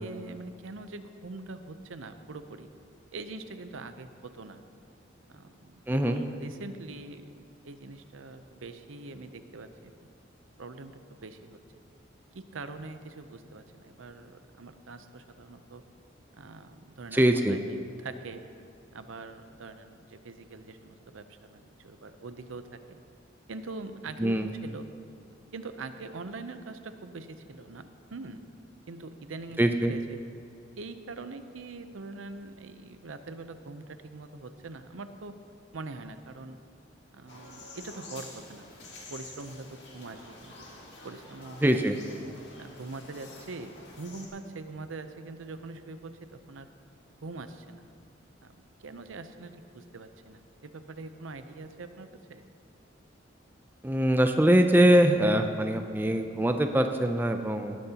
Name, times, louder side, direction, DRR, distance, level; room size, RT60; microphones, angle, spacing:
voice 1, 0.0-2.7 3.1-4.1 4.3-4.6 5.3-10.1 10.6-10.9 11.2-11.6 12.3-15.8 16.4-18.4 18.9-21.2 21.5-23.0 23.5-24.4 24.6-24.9 25.5-27.8 28.1-28.6 28.9-30.2 30.8-35.3 35.7-36.6 37.1-40.7 41.0-41.7 42.6-46.7 47.2-47.9 48.8-52.4, right 3 dB, 85° right, 9 dB, 0.7 m, -43 dB
voice 2, 5.9-6.2 17.1-17.6 24.2-24.5 29.6-29.9 41.6-42.0 53.8-57.8, right 1 dB, 10° right, 6 dB, 0.4 m, -23 dB
sound 1, 37.3-44.3, left 2 dB, 60° left, 2.1 m, -48 dB
18.5 x 10.5 x 2.9 m, 2.4 s
head